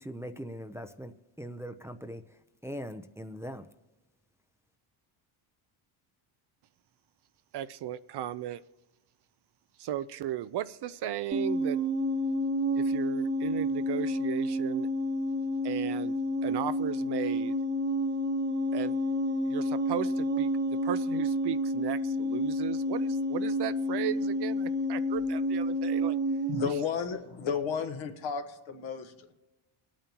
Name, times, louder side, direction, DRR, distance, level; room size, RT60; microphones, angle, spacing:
voice 1, 0.0-3.7, equal, 5° right, 7 dB, 0.6 m, -41 dB
voice 2, 7.5-8.6 9.8-11.8 12.7-14.9 15.6-16.1 16.4-17.5 18.7-19.0 19.5-20.5 20.8-26.2, right 11 dB, 55° right, 14 dB, 0.6 m, -35 dB
sound 1, 11.3-26.7, equal, 20° right, 1.2 m, -29 dB
voice 3, 26.5-29.3, left 6 dB, 65° left, 5 dB, 1.5 m, -33 dB
21.0 x 8.9 x 2.9 m, 1.0 s
cardioid pair, 90°, 49 cm